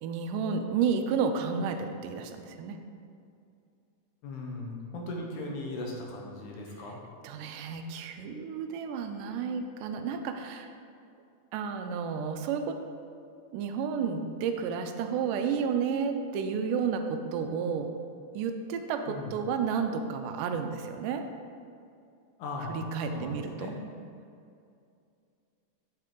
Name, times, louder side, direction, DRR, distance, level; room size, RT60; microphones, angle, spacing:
voice 1, 0.0-2.8 7.2-10.7 11.5-12.8 13.5-17.9 18.3-21.2 22.6-23.7, right 6 dB, 85° right, 6 dB, 2.2 m, -31 dB
voice 2, 4.2-7.0 19.1-19.3 22.4-22.9 23.1-23.7, left 2 dB, 75° left, 0 dB, 2.5 m, -38 dB
7.7 x 7.3 x 3.8 m, 2.4 s
omnidirectional pair, 3.7 m